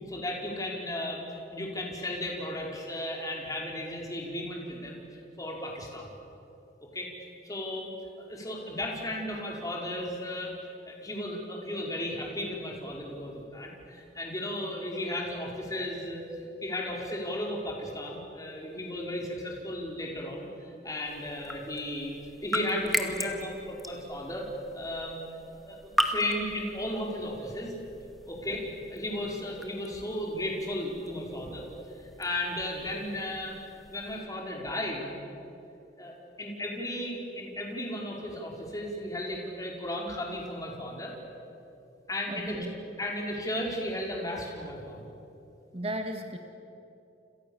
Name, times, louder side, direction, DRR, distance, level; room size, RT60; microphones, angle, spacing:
voice 1, 0.1-1.2 1.5-5.0 5.4-6.1 6.9-7.1 7.4-7.9 8.2-10.5 10.8-16.3 16.6-20.5 20.8-22.1 22.4-24.5 24.7-25.2 25.5-27.7 28.2-31.6 32.0-33.6 33.9-35.1 36.0-41.1 42.1-42.7 43.0-45.1, left 1 dB, 20° left, -1 dB, 4.8 m, -35 dB
sound 1, 21.0-34.2, equal, ahead, 2.1 m, -38 dB
voice 2, 42.3-42.7 45.7-46.4, right 1 dB, 35° right, 4 dB, 1.9 m, -35 dB
30.0 x 28.0 x 7.2 m, 2.8 s
head